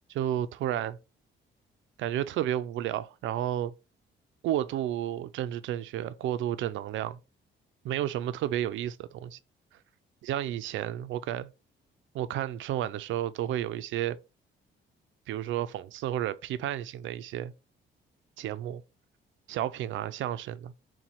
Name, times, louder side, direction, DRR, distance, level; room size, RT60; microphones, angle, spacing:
voice 1, 0.1-1.0 2.0-3.7 4.4-7.2 7.8-9.4 10.2-11.5 12.1-14.2 15.3-17.5 18.4-18.8 19.5-20.7, right 12 dB, 75° right, 0.4 m, -32 dB
4.3 x 2.2 x 4.1 m
cardioid pair, 90°, 20 cm